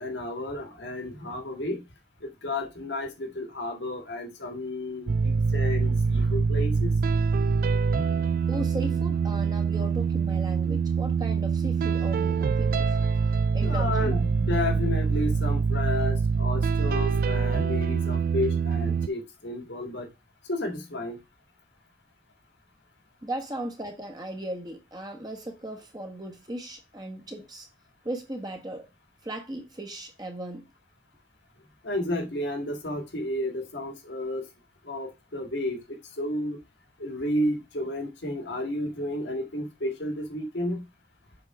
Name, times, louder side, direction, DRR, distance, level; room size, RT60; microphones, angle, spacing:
voice 1, 0.0-1.8 2.2-6.9 13.6-20.1 20.5-21.2 31.8-34.4 34.9-36.6 37.0-40.8, left 1 dB, 75° left, 1.9 m, -32 dB
sound 1, 5.1-19.1, right 5 dB, 50° right, 0.3 m, -25 dB
voice 2, 8.5-13.0 13.5-14.2 23.2-27.7 28.0-28.9 29.2-30.7, right 1 dB, 20° right, 1.3 m, -37 dB
7.6 x 3.7 x 4.7 m
head